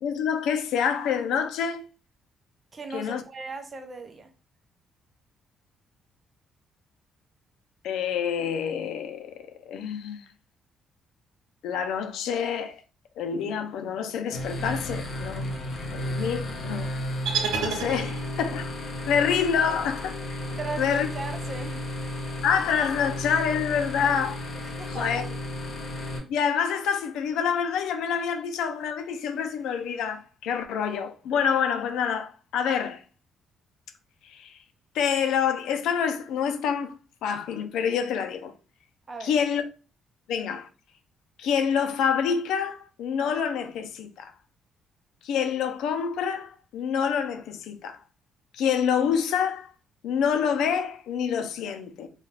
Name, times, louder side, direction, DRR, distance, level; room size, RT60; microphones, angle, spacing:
voice 1, 0.0-1.9 2.9-3.2 7.8-9.3 9.7-10.2 11.6-12.8 13.2-15.5 15.9-16.9 17.5-18.7 19.1-20.4 20.8-21.1 22.4-24.4 24.9-25.3 26.3-33.0 34.2-34.6 34.9-37.0 37.2-38.5 39.2-39.6 40.3-40.7 41.4-44.3 45.2-48.0 48.5-49.7 50.0-52.1, left 7 dB, 85° left, 0.4 m, -27 dB
voice 2, 2.7-4.3 20.6-21.8 24.6-25.3 39.1-39.3, right 3 dB, 25° right, 0.5 m, -37 dB
sound 1, 14.3-26.2, left 1 dB, 40° left, 0.9 m, -33 dB
sound 2, 17.3-18.6, right 6 dB, 85° right, 0.6 m, -29 dB
2.3 x 2.3 x 3.2 m
cardioid pair, 125°, 0 cm